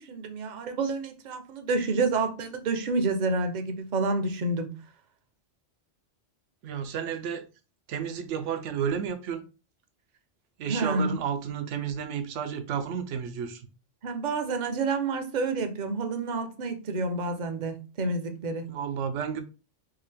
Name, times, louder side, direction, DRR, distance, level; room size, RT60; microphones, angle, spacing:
voice 1, 0.0-4.7 10.6-11.2 14.0-18.7, right 3 dB, 50° right, 0.6 m, -29 dB
voice 2, 6.6-7.4 7.9-9.4 10.6-13.7 18.7-19.4, right 7 dB, 80° right, 0.9 m, -32 dB
3.8 x 2.4 x 3.3 m
omnidirectional pair, 1.2 m